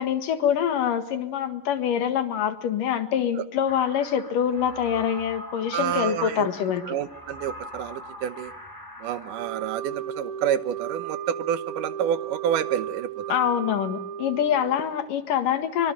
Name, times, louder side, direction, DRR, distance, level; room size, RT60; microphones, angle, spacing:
voice 1, 0.0-6.8 13.3-15.9, left 9 dB, 85° left, 9 dB, 3.3 m, -25 dB
sound 1, 3.7-9.7, equal, 5° left, 2.3 m, -42 dB
voice 2, 5.7-6.5 6.8-8.5 9.0-13.4, right 10 dB, 80° right, 13 dB, 2.7 m, -28 dB
Wind instrument woodwind instrument, 9.4-15.0, right 9 dB, 55° right, 1.8 m, -35 dB
24.5 x 23.0 x 7.5 m, 0.80 s
omnidirectional pair, 3.7 m